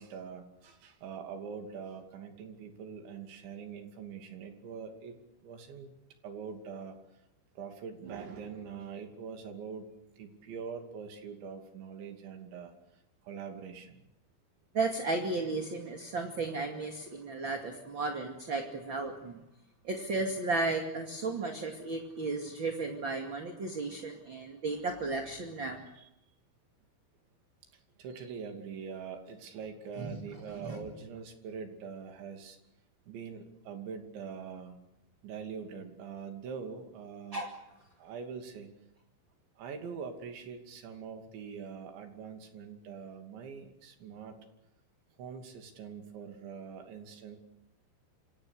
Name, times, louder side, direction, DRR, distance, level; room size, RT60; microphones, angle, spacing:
voice 1, 0.0-5.9 6.2-7.0 7.6-9.9 10.2-12.7 13.2-14.0 26.0-26.1 28.0-32.6 33.1-34.8 35.2-37.5 38.0-38.7 39.6-44.4 45.2-47.4, right 6 dB, 80° right, 4 dB, 5.0 m, -43 dB
voice 2, 14.7-19.4 19.8-25.8 30.0-30.2 30.5-30.8 37.3-37.5, right 3 dB, 35° right, 3 dB, 2.3 m, -34 dB
27.5 x 26.5 x 6.6 m, 0.87 s
omnidirectional pair, 5.2 m